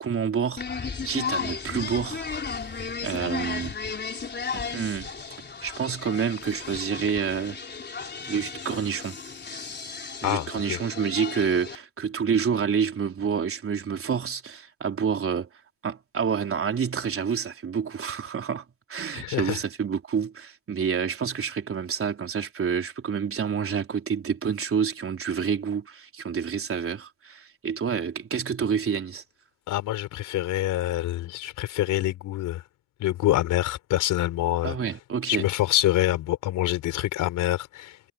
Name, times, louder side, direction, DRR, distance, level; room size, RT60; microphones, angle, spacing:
voice 1, 0.0-2.2 3.0-3.8 4.5-5.1 5.6-7.6 8.3-9.2 10.2-15.5 15.8-18.6 18.9-29.2 34.6-35.5, right 7 dB, 45° right, 4.1 m, -28 dB
sound 1, 0.6-11.8, left 5 dB, 35° left, 3.9 m, -35 dB
voice 2, 10.2-10.8 19.1-19.6 29.7-32.6 33.0-34.8 35.3-38.1, left 14 dB, 90° left, 4.6 m, -26 dB
cardioid pair, 90°, 30 cm